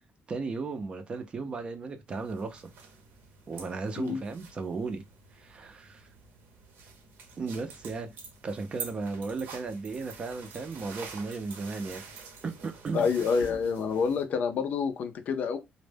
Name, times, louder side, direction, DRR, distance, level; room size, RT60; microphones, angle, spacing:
voice 1, 0.3-2.7 3.5-5.0 5.3-6.1 7.4-8.1 8.4-12.0 12.4-13.1, right 4 dB, 30° right, 0.4 m, -35 dB
sound 1, 2.1-14.2, right 5 dB, 70° right, 0.7 m, -47 dB
voice 2, 12.9-15.6, left 5 dB, 50° left, 0.4 m, -28 dB
2.1 x 2.1 x 3.3 m
cardioid pair, 155°, 4 cm